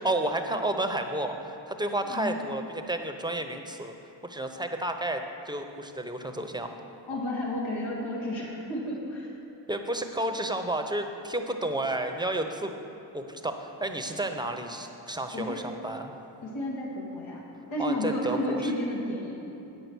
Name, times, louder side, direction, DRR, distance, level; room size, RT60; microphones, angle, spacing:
voice 1, 0.0-3.9 4.2-6.7 9.7-12.7 13.1-16.3 17.8-18.7, right 1 dB, 10° right, 5 dB, 0.8 m, -31 dB
voice 2, 2.1-2.5 7.1-9.3 15.3-15.6 16.4-17.4 17.7-19.4, left 1 dB, 80° left, -4 dB, 2.0 m, -32 dB
8.6 x 6.9 x 6.2 m, 3.0 s
cardioid pair, 50°, 46 cm